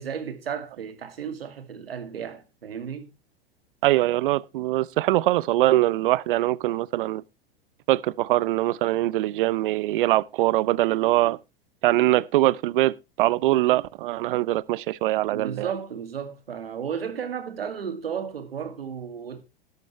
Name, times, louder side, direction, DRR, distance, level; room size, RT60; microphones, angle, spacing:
voice 1, 0.0-3.1 15.3-19.4, right 7 dB, 85° right, 2.4 m, -34 dB
voice 2, 3.8-7.2 7.9-11.4 11.8-15.7, right 16 dB, 65° right, 0.7 m, -22 dB
13.5 x 11.5 x 3.2 m
hypercardioid pair, 95°, 29 cm